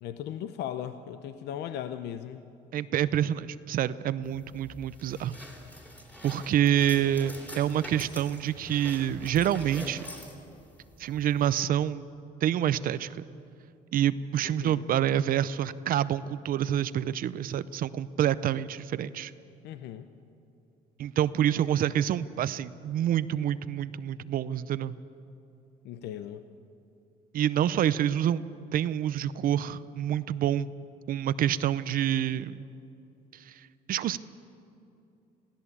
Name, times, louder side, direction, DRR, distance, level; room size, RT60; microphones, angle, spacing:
voice 1, 0.0-2.4 14.4-14.8 19.6-20.1 25.8-26.4, left 10 dB, 75° left, 10 dB, 0.8 m, -37 dB
voice 2, 2.7-5.4 6.2-10.1 11.0-12.1 12.4-13.2 13.9-19.3 21.0-25.0 27.3-28.4 28.7-30.7 31.1-32.6 33.3-33.5 33.9-34.2, right 10 dB, 55° right, 15 dB, 0.6 m, -27 dB
sound 1, 4.2-11.6, equal, 10° left, 3.3 m, -46 dB
23.0 x 16.0 x 8.4 m, 2.7 s
cardioid pair, 110°, 17 cm